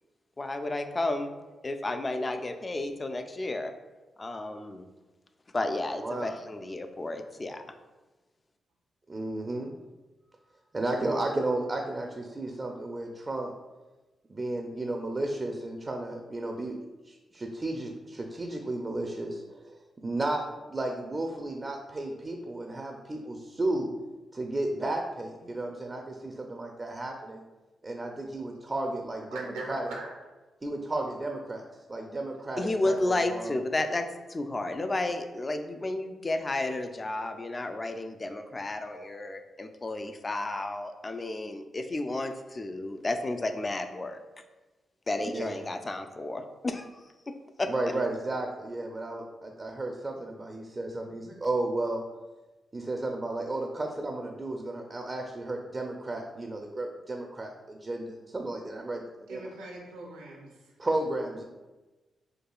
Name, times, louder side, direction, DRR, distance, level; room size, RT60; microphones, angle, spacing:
voice 1, 0.4-1.3 1.6-3.7 4.2-4.9 5.5-7.6 32.6-44.2 45.1-47.7, left 2 dB, 35° left, 7 dB, 0.4 m, -32 dB
voice 2, 6.0-6.3 9.1-9.7 10.7-13.5 14.3-16.7 17.1-19.7 20.0-20.4 20.7-23.9 24.3-27.4 27.8-29.9 30.6-31.6 31.9-33.5 45.2-45.6 47.7-52.0 52.7-59.4 60.8-61.4, right 2 dB, 35° right, 2 dB, 0.4 m, -33 dB
voice 3, 29.3-30.2 59.3-60.7, right 2 dB, 90° right, -2 dB, 0.7 m, -41 dB
4.5 x 2.3 x 2.3 m, 1.2 s
hypercardioid pair, 40°, 0 cm